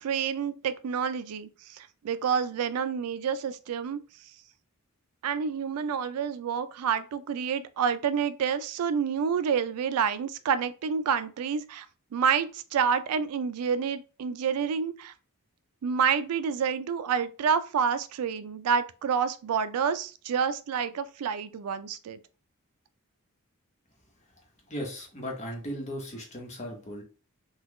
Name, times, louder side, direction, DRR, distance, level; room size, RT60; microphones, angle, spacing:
voice 1, 0.0-4.0 5.2-11.9 12.1-15.1 15.8-22.2, right 7 dB, 90° right, 0.4 m, -28 dB
voice 2, 24.7-27.0, equal, 30° left, 1.0 m, -37 dB
3.8 x 2.3 x 3.0 m
head